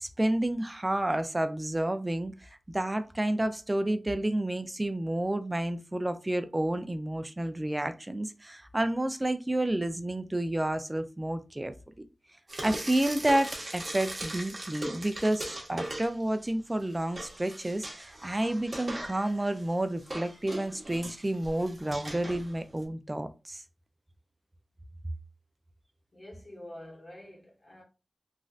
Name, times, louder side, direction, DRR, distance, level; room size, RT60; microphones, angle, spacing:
voice 1, 0.0-11.7 12.6-23.6, right 1 dB, 20° right, 0.3 m, -30 dB
Frying (food), 12.5-16.5 16.8-22.8, right 1 dB, 40° right, 0.9 m, -40 dB
voice 2, 26.1-27.8, left 1 dB, 40° left, 1.1 m, -47 dB
3.1 x 2.5 x 2.3 m
wide cardioid pair, 105°, 0 cm